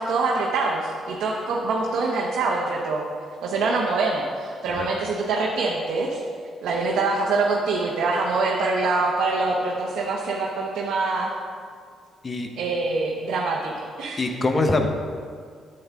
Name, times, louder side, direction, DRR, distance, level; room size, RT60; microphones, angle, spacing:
voice 1, 0.0-3.0 3.4-6.2 6.6-11.4 12.6-14.2, right 3 dB, 75° right, -2 dB, 0.9 m, -24 dB
voice 2, 14.2-14.9, left 2 dB, 30° left, 5 dB, 0.9 m, -23 dB
8.8 x 7.9 x 3.6 m, 2.1 s
cardioid pair, 90°, 0 cm